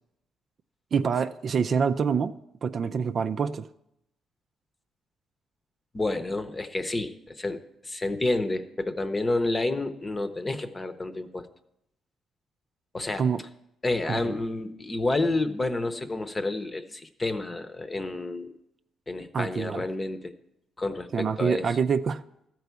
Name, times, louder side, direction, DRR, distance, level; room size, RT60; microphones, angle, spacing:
voice 1, 0.9-2.3 2.6-3.7 13.2-13.4 14.1-14.4 19.3-19.9 21.1-22.2, right 6 dB, 50° right, 10 dB, 0.4 m, -26 dB
voice 2, 5.9-11.4 12.9-13.2 13.8-18.5 19.1-20.3 20.8-21.7, left 2 dB, 25° left, 10 dB, 0.8 m, -29 dB
13.5 x 4.6 x 8.2 m, 0.80 s
cardioid pair, 90°, 0 cm